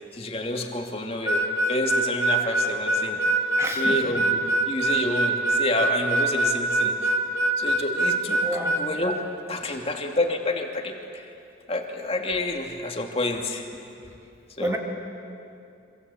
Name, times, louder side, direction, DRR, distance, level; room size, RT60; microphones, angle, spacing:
voice 1, 0.1-3.2 3.8-7.1 7.6-8.4 8.8-9.2 9.5-11.3 11.7-13.7 14.5-14.8, left 2 dB, 30° left, 3 dB, 2.5 m, -29 dB
Harmonica, 1.3-8.9, right 2 dB, 55° left, 3.4 m, -23 dB
voice 2, 3.6-4.0 8.4-8.8 9.6-9.8 13.7-13.8 14.6-14.8, equal, 15° right, 1 dB, 2.8 m, -30 dB
27.5 x 26.0 x 8.4 m, 2.5 s
head